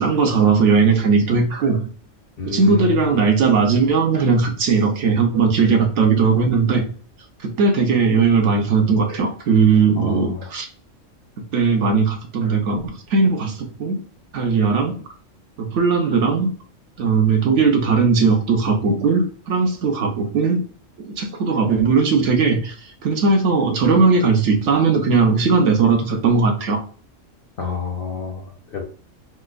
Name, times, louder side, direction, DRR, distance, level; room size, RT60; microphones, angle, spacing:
voice 1, 0.0-1.8 2.4-6.8 7.4-10.7 11.5-14.0 14.3-15.0 15.6-16.5 17.0-20.6 21.0-22.7 23.0-26.8, right 4 dB, 70° right, 3 dB, 1.0 m, -18 dB
voice 2, 2.4-3.1 10.0-10.5 27.6-28.8, left 6 dB, 60° left, 2 dB, 0.6 m, -28 dB
4.3 x 2.1 x 2.4 m, 0.42 s
omnidirectional pair, 1.3 m